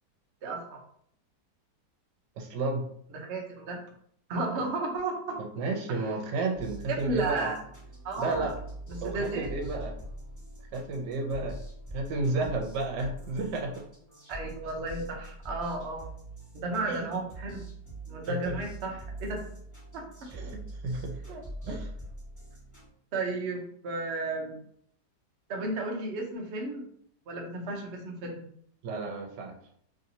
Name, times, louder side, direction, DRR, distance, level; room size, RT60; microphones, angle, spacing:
voice 1, 0.4-0.8 3.1-3.8 4.3-5.4 5.9-6.1 6.9-7.6 8.0-8.5 8.9-9.5 14.3-16.1 16.5-17.6 18.1-19.4 19.9-20.5 21.3-21.8 23.1-24.6 25.5-26.9 27.3-28.4, right 2 dB, 55° right, 0 dB, 0.7 m, -33 dB
voice 2, 2.4-2.9 5.6-7.5 8.2-8.5 9.0-9.9 10.7-11.6 11.9-13.7 16.9-17.1 18.3-18.6 20.3-20.6 20.8-21.3 21.7-21.8 28.8-29.5, right 3 dB, 80° right, 2 dB, 1.3 m, -32 dB
sound 1, 6.5-22.9, right 1 dB, 10° left, 1.3 m, -43 dB
3.2 x 2.8 x 2.6 m, 0.66 s
omnidirectional pair, 1.8 m